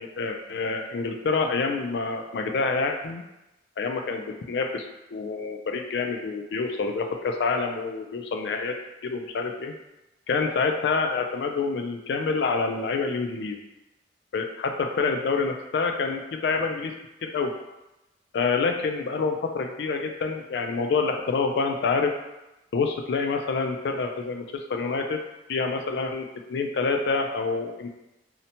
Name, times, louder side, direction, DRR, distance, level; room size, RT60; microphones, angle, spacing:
voice 1, 0.0-3.2 3.8-8.7 9.0-9.7 10.3-13.6 14.3-16.9 17.2-17.5 18.3-22.1 22.7-25.2 25.5-27.9, left 4 dB, 60° left, 4 dB, 0.3 m, -27 dB
2.8 x 2.1 x 2.7 m, 0.96 s
head